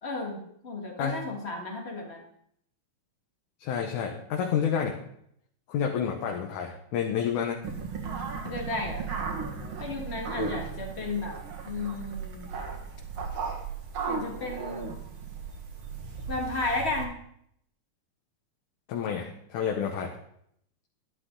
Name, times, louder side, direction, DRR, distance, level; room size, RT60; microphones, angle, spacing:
voice 1, 0.0-2.2 8.4-9.1 9.8-11.4 11.7-12.6 14.1-15.0 16.3-17.2, left 3 dB, 35° left, 2 dB, 1.0 m, -33 dB
voice 2, 3.6-5.0 5.7-7.6 10.4-10.6 18.9-20.1, left 7 dB, 70° left, 1 dB, 2.3 m, -29 dB
sound 1, 7.6-17.1, right 5 dB, 50° right, 2.0 m, -36 dB
12.5 x 11.5 x 3.8 m, 0.70 s
omnidirectional pair, 3.9 m